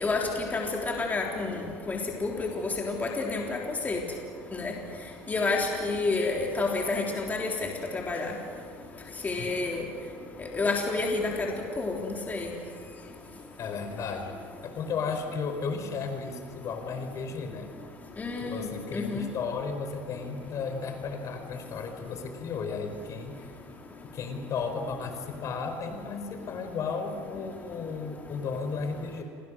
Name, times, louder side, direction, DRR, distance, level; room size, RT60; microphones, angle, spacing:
voice 1, 0.0-1.6 1.9-2.5 2.8-3.6 3.8-4.0 4.5-4.7 5.3-7.5 7.9-8.3 9.2-9.8 10.4-11.3 11.8-12.5 18.2-19.2, left 3 dB, 25° left, 0 dB, 3.6 m, -29 dB
voice 2, 9.4-9.8 13.6-17.7 18.4-23.6 24.0-29.2, left 5 dB, 50° left, 6 dB, 4.7 m, -34 dB
29.5 x 25.0 x 6.4 m, 2.1 s
supercardioid pair, 95°, 7 cm